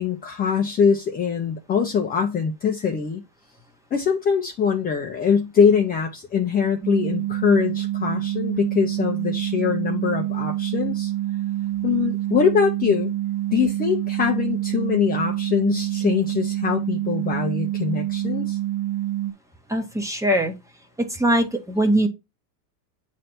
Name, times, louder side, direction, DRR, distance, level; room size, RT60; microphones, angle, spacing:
voice 1, 0.0-3.2 3.9-11.1 11.8-13.1 13.5-18.6, left 6 dB, 20° left, 0.7 m, -23 dB
sound 1, 6.8-19.3, right 14 dB, 35° right, 1.5 m, -27 dB
voice 2, 19.7-20.5 21.1-22.1, right 1 dB, 5° right, 1.1 m, -21 dB
8.3 x 3.4 x 4.2 m
supercardioid pair, 135°, 49 cm